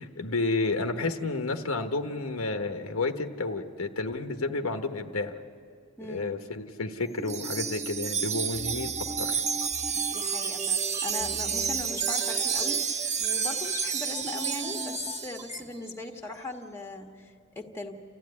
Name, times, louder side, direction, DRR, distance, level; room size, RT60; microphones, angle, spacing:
voice 1, 0.0-5.3 6.0-8.9 9.2-9.4, left 3 dB, 85° left, 6 dB, 1.2 m, -31 dB
voice 2, 6.0-6.4 9.9-17.9, left 2 dB, 10° left, 3 dB, 1.4 m, -39 dB
sound 1, 7.2-15.6, equal, 15° right, 1.3 m, -40 dB
Wind chime, 7.3-15.5, right 7 dB, 35° right, 0.8 m, -30 dB
28.5 x 14.5 x 9.7 m, 2.2 s
head